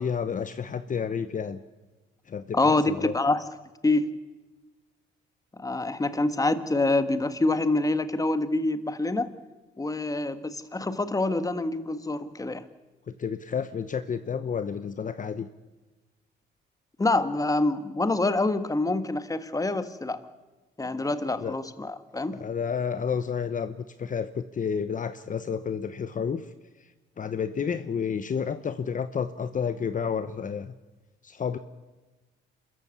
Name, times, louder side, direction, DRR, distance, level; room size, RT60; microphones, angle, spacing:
voice 1, 0.0-1.6 2.3-3.1 13.2-15.5 21.4-21.6 22.3-26.5 26.8-26.9 27.2-30.7 31.2-31.6, left 6 dB, 40° left, 11 dB, 1.0 m, -30 dB
voice 2, 2.5-3.4 3.8-4.1 5.6-9.3 9.8-12.6 17.0-20.2 20.8-22.4, left 2 dB, 15° left, 11 dB, 1.6 m, -26 dB
26.5 x 14.0 x 8.3 m, 1.2 s
cardioid pair, 90°, 20 cm